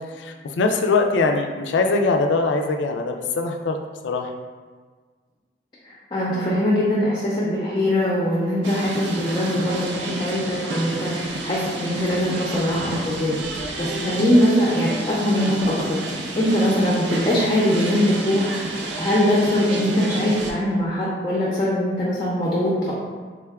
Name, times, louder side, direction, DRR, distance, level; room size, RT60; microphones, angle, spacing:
voice 1, 0.1-3.8 4.0-4.3 13.9-14.2, left 3 dB, 85° left, 4 dB, 0.4 m, -22 dB
voice 2, 6.1-11.1 11.4-13.4 13.8-16.0 16.4-18.5 19.0-22.9, equal, 25° left, -7 dB, 0.5 m, -21 dB
sound 1, 8.6-20.5, right 2 dB, 80° right, 0.5 m, -31 dB
3.5 x 2.2 x 3.5 m, 1.5 s
head